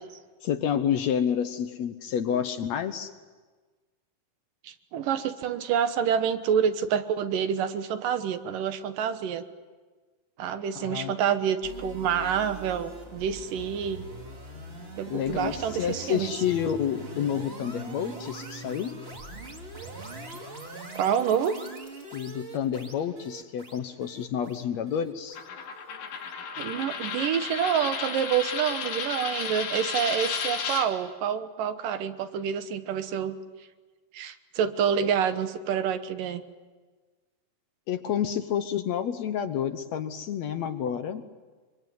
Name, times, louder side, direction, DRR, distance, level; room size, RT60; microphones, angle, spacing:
voice 1, 0.4-3.1 10.8-11.2 15.1-19.0 22.1-25.4 37.9-41.3, left 9 dB, 65° left, 10 dB, 1.8 m, -29 dB
voice 2, 4.6-9.4 10.4-14.1 15.0-16.3 21.0-21.6 26.6-33.3 34.1-36.4, right 8 dB, 75° right, 10 dB, 2.8 m, -27 dB
sound 1, 11.6-26.8, right 2 dB, 20° right, 1.9 m, -42 dB
Coin (dropping), 25.4-30.9, left 6 dB, 80° left, 4.6 m, -33 dB
25.0 x 25.0 x 9.4 m, 1.4 s
omnidirectional pair, 4.0 m